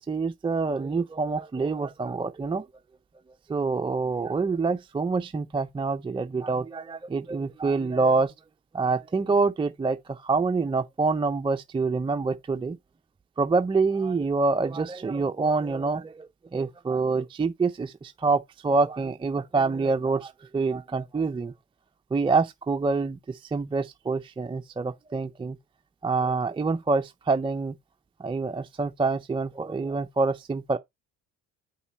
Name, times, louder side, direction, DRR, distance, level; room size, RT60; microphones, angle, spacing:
voice 1, 0.0-2.7 3.5-8.3 8.7-12.8 13.4-21.5 22.1-25.6 26.0-27.8 28.2-30.8, right 4 dB, 15° right, 0.4 m, -26 dB
5.6 x 5.3 x 4.1 m
supercardioid pair, 75°, 36 cm